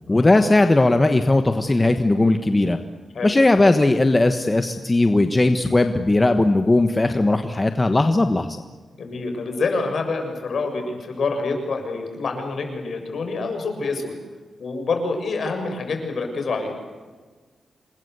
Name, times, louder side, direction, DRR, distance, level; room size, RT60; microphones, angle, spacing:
voice 1, 0.1-2.8 3.2-8.5, left 2 dB, 20° left, 7 dB, 1.3 m, -18 dB
voice 2, 9.0-14.2 14.6-16.8, left 3 dB, 60° left, 4 dB, 7.1 m, -27 dB
27.5 x 21.5 x 8.2 m, 1.4 s
wide cardioid pair, 125°, 0 cm